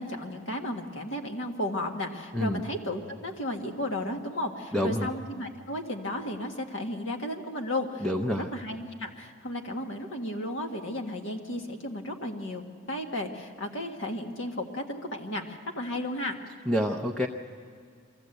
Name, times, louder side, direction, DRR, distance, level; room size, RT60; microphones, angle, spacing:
voice 1, 0.0-12.6 12.9-16.4, left 1 dB, 60° left, 4 dB, 1.6 m, -34 dB
voice 2, 4.7-5.1 8.0-8.5 16.7-17.3, equal, ahead, 3 dB, 0.6 m, -27 dB
23.0 x 15.0 x 7.9 m, 2.2 s
head